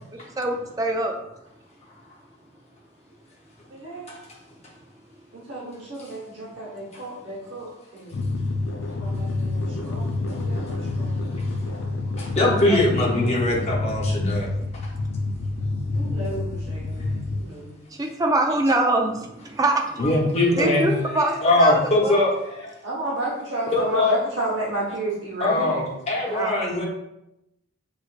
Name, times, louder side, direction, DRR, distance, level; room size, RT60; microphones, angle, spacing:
voice 1, 0.1-1.1 17.9-20.1 20.6-22.3 26.3-26.7, right 2 dB, 15° right, 2 dB, 0.4 m, -24 dB
voice 2, 3.7-4.2 5.3-8.2 9.0-11.2 15.9-17.8 22.8-25.8 26.2-26.5, right 2 dB, 60° right, -5 dB, 1.1 m, -32 dB
sound 1, 8.1-17.4, left 2 dB, 60° left, 0.5 m, -28 dB
voice 3, 12.2-14.9 20.0-20.9 21.4-22.7 23.7-24.2 25.4-26.9, left 2 dB, 30° left, -4 dB, 0.9 m, -22 dB
6.3 x 2.5 x 2.5 m, 0.87 s
head